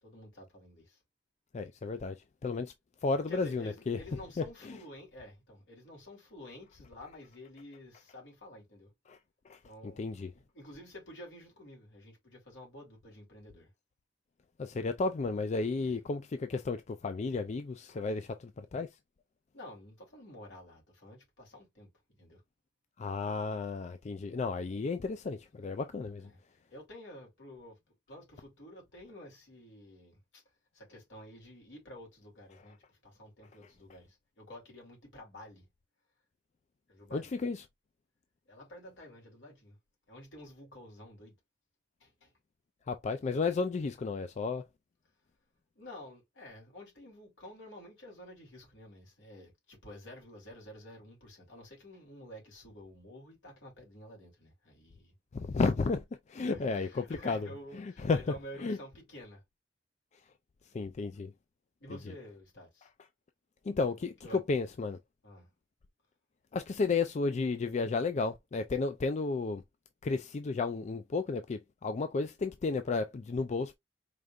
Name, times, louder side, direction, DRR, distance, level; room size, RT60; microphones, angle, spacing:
voice 1, 0.0-1.0 3.3-8.9 9.6-13.7 15.8-16.0 19.5-21.9 22.2-22.4 26.2-26.4 26.7-27.8 28.1-30.4 30.7-35.7 36.9-37.3 38.5-39.8 40.1-41.3 42.0-42.3 45.8-55.1 56.4-59.4 61.8-62.9 64.2-64.4 65.2-65.5, left 1 dB, 75° left, 3.1 m, -50 dB
voice 2, 1.5-2.1 2.4-2.7 3.0-4.0 4.4-4.5 9.1-9.2 9.5-9.6 9.8-10.3 14.6-18.9 23.0-26.3 37.1-37.6 42.9-44.6 55.3-56.0 56.3-56.9 57.3-57.4 57.8-58.2 58.6-58.8 60.7-61.3 63.7-64.1 64.5-65.0 66.5-69.6 70.0-73.8, left 4 dB, 40° left, 0.4 m, -32 dB
5.0 x 3.3 x 2.4 m
head